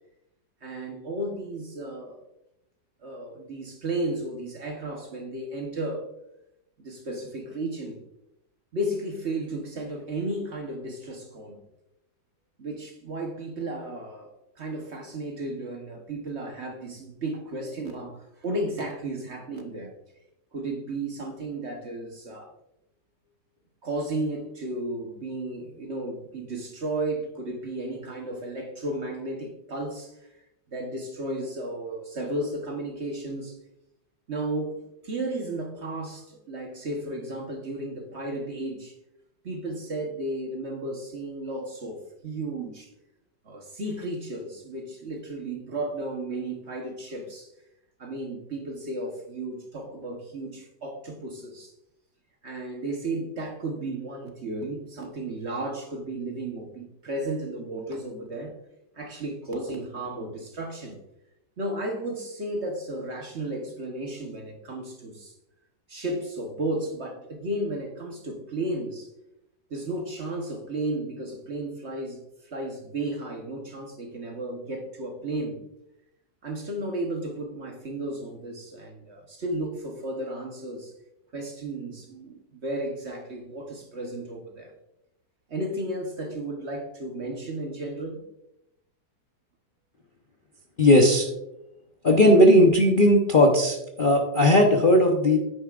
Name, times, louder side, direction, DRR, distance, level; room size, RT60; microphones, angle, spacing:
voice 1, 0.6-2.2 3.0-6.0 6.8-8.0 8.7-11.6 12.6-14.3 14.6-19.9 20.5-22.5 23.8-30.2 30.7-33.6 34.3-38.9 39.4-42.9 43.4-47.5 48.0-51.7 52.4-58.5 58.9-61.0 61.6-65.3 65.9-69.1 69.7-75.6 76.4-80.9 81.3-84.7 85.5-88.2, right 1 dB, 40° right, 2 dB, 1.2 m, -33 dB
voice 2, 90.8-91.3 92.0-95.4, left 1 dB, 40° left, 1 dB, 0.8 m, -17 dB
9.5 x 9.4 x 2.5 m, 0.87 s
omnidirectional pair, 1.9 m